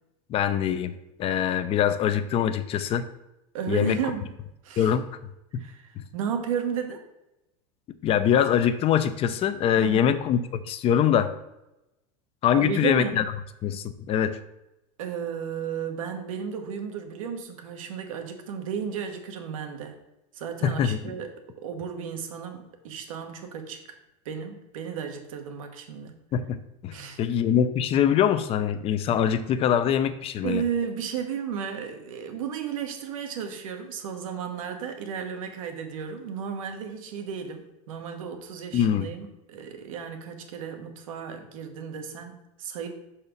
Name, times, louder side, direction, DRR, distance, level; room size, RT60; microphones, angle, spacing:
voice 1, 0.3-0.9 1.2-3.1 3.7-4.0 4.8-5.1 5.5-5.6 6.0-6.1 8.0-11.3 12.4-13.2 13.6-14.4 20.6-21.0 26.3-30.6 38.7-39.1, left 9 dB, 35° left, 12 dB, 0.5 m, -23 dB
voice 2, 3.5-4.3 4.6-4.9 5.5-7.0 9.7-10.2 12.5-13.2 15.0-20.0 20.3-21.3 21.6-24.0 24.2-26.2 26.9-27.2 30.4-42.9, right 7 dB, 90° right, 5 dB, 1.2 m, -34 dB
5.9 x 4.2 x 5.2 m, 0.91 s
supercardioid pair, 125°, 17 cm